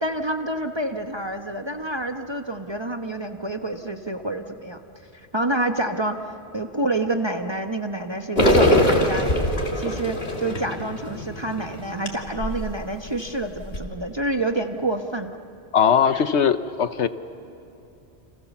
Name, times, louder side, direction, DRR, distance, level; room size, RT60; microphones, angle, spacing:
voice 1, 0.0-4.8 5.3-6.2 6.5-9.3 9.8-15.4, right 2 dB, 25° right, 4 dB, 1.0 m, -28 dB
sound 1, 8.3-12.6 13.1-13.2 13.6-13.8, equal, 60° left, 3.1 m, -22 dB
voice 2, 15.7-17.1, left 7 dB, 75° left, 11 dB, 1.2 m, -19 dB
30.0 x 26.5 x 7.2 m, 2.8 s
omnidirectional pair, 1.2 m